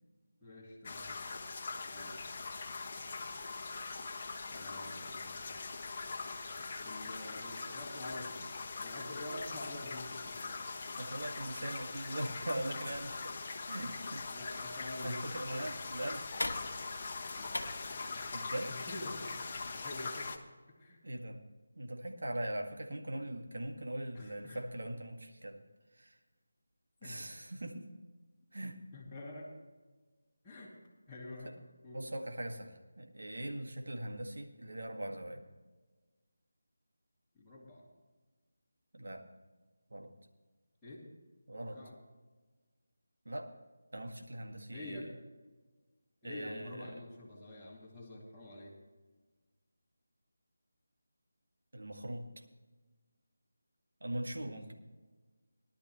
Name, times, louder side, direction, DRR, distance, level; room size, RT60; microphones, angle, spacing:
voice 1, 0.4-1.1 1.9-2.2 4.5-5.6 6.8-10.9 14.3-15.7 17.4-17.6 17.9-18.2 18.7-19.3 19.8-20.3 20.8-21.0 24.1-24.7 27.0-27.2 28.9-29.5 30.4-30.8 31.1-31.5 31.8-32.1 37.3-37.9 40.8-41.0 41.7-42.0 44.7-45.1 46.2-48.7, left 1 dB, 5° left, -12 dB, 2.5 m, -47 dB
sound 1, 0.8-20.4, left 4 dB, 35° left, 1.1 m, -42 dB
voice 2, 11.0-13.4 13.7-14.3 15.0-16.3 18.3-18.7 21.0-21.5 21.8-25.6 25.9-26.2 27.0-27.9 28.5-28.8 31.4-31.6 31.9-35.4 38.9-39.3 39.9-40.1 41.5-41.8 43.3-43.5 43.9-45.1 46.2-47.0 51.7-52.3 54.0-54.7, right 1 dB, 70° right, 3 dB, 1.8 m, -41 dB
sound 2, 12.8-19.8, left 2 dB, 70° left, 1.1 m, -46 dB
18.5 x 11.5 x 3.1 m, 1.3 s
figure-of-eight pair, 160°, 0 cm